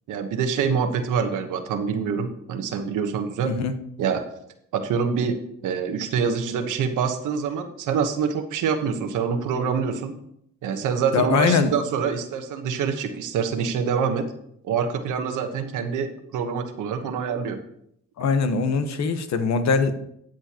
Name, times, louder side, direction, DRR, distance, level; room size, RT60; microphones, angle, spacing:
voice 1, 0.1-3.5 4.0-4.2 4.7-5.4 5.6-10.1 10.6-14.3 14.6-17.6, right 6 dB, 85° right, 7 dB, 1.2 m, -25 dB
voice 2, 3.4-3.8 11.1-11.7 18.2-20.0, left 5 dB, 65° left, 9 dB, 1.2 m, -22 dB
13.0 x 7.9 x 3.0 m, 0.73 s
cardioid pair, 90°, 30 cm